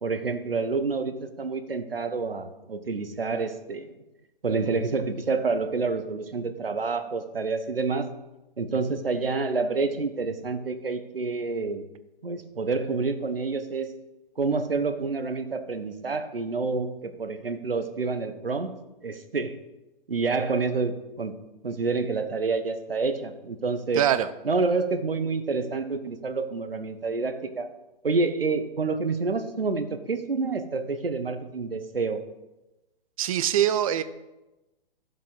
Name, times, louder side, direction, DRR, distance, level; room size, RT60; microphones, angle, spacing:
voice 1, 0.0-3.9 4.4-8.1 8.6-11.8 12.2-13.9 14.4-18.7 19.0-19.5 20.1-21.4 21.6-24.0 24.4-27.7 28.0-32.3, right 4 dB, 75° right, 10 dB, 1.1 m, -28 dB
voice 2, 24.0-24.3 33.2-34.0, right 11 dB, 40° right, 13 dB, 0.6 m, -23 dB
13.0 x 7.4 x 3.9 m, 1.0 s
figure-of-eight pair, 120°, 29 cm